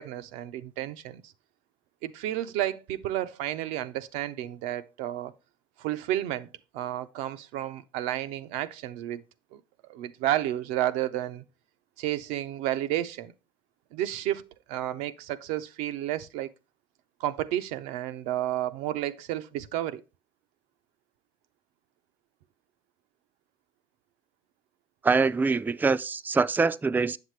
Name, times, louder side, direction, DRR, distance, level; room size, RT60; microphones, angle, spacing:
voice 1, 0.0-1.3 2.0-5.3 5.8-6.5 6.7-9.2 9.5-9.6 9.9-11.4 12.0-13.3 13.9-16.5 17.2-20.0, right 13 dB, 85° right, 0.5 m, -31 dB
voice 2, 25.0-27.2, right 4 dB, 15° right, 0.4 m, -24 dB
7.2 x 6.7 x 3.1 m
supercardioid pair, 65°, 12 cm